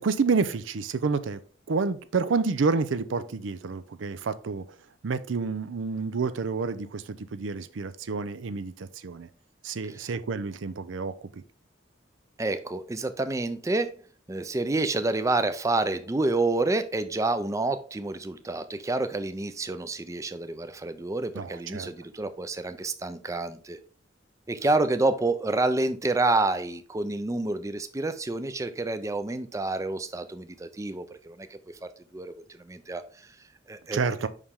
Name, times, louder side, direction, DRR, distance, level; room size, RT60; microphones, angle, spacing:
voice 1, 0.0-1.4 1.7-4.6 5.0-9.3 9.6-11.4 21.3-21.9 33.9-34.3, right 4 dB, 90° right, 0.5 m, -29 dB
voice 2, 12.4-14.0 14.3-23.8 24.5-31.5 31.8-32.3 32.7-33.0 33.7-34.0, right 2 dB, 15° right, 0.4 m, -28 dB
5.5 x 4.9 x 3.6 m
head